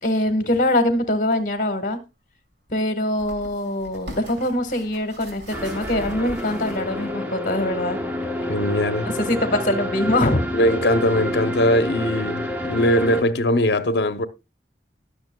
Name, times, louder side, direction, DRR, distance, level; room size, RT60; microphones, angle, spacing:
voice 1, 0.0-2.0 2.7-8.0 9.0-10.5, left 1 dB, 45° left, 1.3 m, -23 dB
sound 1, 1.3-1.4 3.1-7.1 7.7-7.8, equal, 75° right, 2.5 m, -40 dB
sound 2, 5.5-13.2, equal, 10° right, 0.9 m, -28 dB
voice 2, 8.5-9.1 10.5-14.3, left 1 dB, 65° left, 0.7 m, -20 dB
19.5 x 6.6 x 2.2 m
head